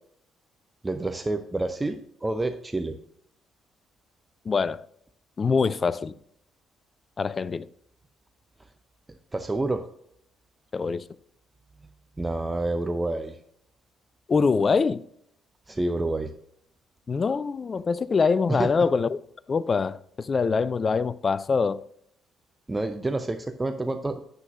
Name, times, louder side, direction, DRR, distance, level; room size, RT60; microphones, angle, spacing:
voice 1, 0.8-3.0 9.3-9.8 12.2-13.4 15.7-16.3 18.5-18.7 22.7-24.3, right 2 dB, 20° right, 0.7 m, -28 dB
voice 2, 4.5-4.9 5.4-6.1 7.2-7.7 10.7-11.0 14.3-15.0 17.1-19.2 19.5-21.8, left 5 dB, 40° left, 0.4 m, -24 dB
9.6 x 7.8 x 2.5 m
hypercardioid pair, 50°, 0 cm